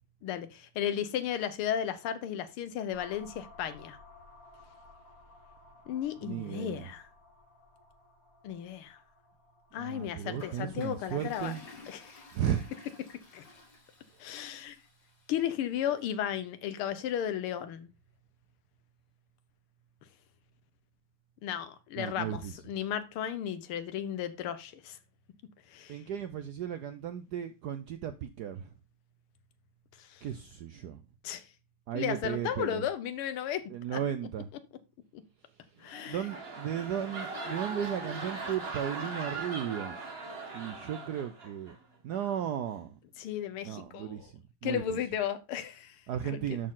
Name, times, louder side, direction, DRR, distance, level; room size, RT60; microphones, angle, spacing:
voice 1, 0.2-4.0 5.9-7.1 8.4-9.0 9.7-11.5 11.9-12.2 13.3-13.4 14.2-14.8 15.3-17.9 21.4-25.0 25.7-26.0 30.0-30.3 31.2-31.5 31.9-34.0 35.1-35.2 35.8-36.2 43.2-44.3 44.6-46.4, left 9 dB, 85° left, 1.8 m, -34 dB
sound 1, 2.9-10.5, left 2 dB, 40° left, 2.6 m, -57 dB
voice 2, 6.2-6.9 9.8-11.6 12.3-12.7 22.0-22.6 25.9-28.7 30.2-31.0 31.9-32.8 33.7-34.5 36.1-40.0 40.5-41.8 42.0-43.0 43.6-45.2 46.1-46.7, right 9 dB, 75° right, 0.9 m, -35 dB
Toilet flush, 10.3-15.4, left 3 dB, 55° left, 3.0 m, -52 dB
sound 2, 35.8-41.7 42.1-42.4, right 3 dB, 30° right, 1.6 m, -40 dB
12.0 x 4.4 x 3.8 m
omnidirectional pair, 2.4 m